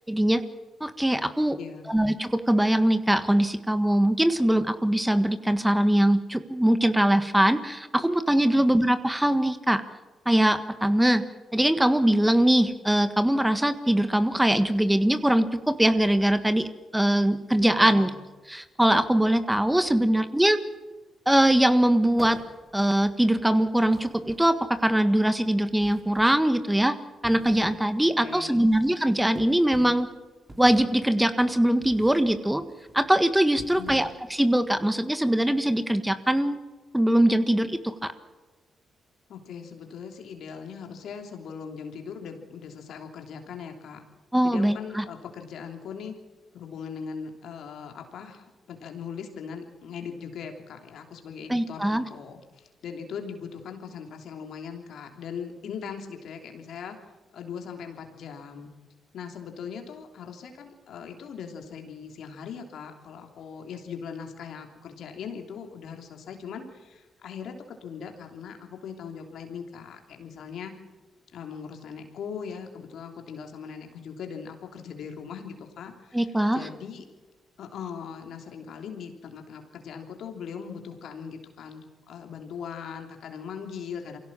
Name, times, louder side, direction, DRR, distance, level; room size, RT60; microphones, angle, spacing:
voice 1, 0.1-0.4 0.8-1.6 1.9-9.8 10.2-11.2 11.5-16.7 16.9-18.1 18.5-20.6 21.2-22.4 22.7-26.9 27.2-30.1 30.6-32.6 32.9-36.6 36.9-37.9 44.3-45.0 51.5-52.0 76.1-76.6, right 1 dB, 10° right, 10 dB, 1.6 m, -22 dB
voice 2, 1.6-1.9 8.5-8.6 17.8-18.2 28.2-28.7 33.7-34.0 39.3-44.0 44.4-46.2 46.5-57.1 57.3-58.7 59.1-67.5 67.8-70.7 71.3-77.0 77.6-84.2, left 6 dB, 70° left, 4 dB, 3.2 m, -40 dB
sound 1, 22.2-22.8 23.9-24.8 25.8-26.5 27.1-27.9 28.3-28.5 29.4-30.1 30.5-31.1 31.8-32.3 32.7-33.0 33.5-34.3, right 1 dB, 25° right, 4.0 m, -45 dB
23.5 x 16.5 x 7.5 m, 1.2 s
hypercardioid pair, 45°, 0 cm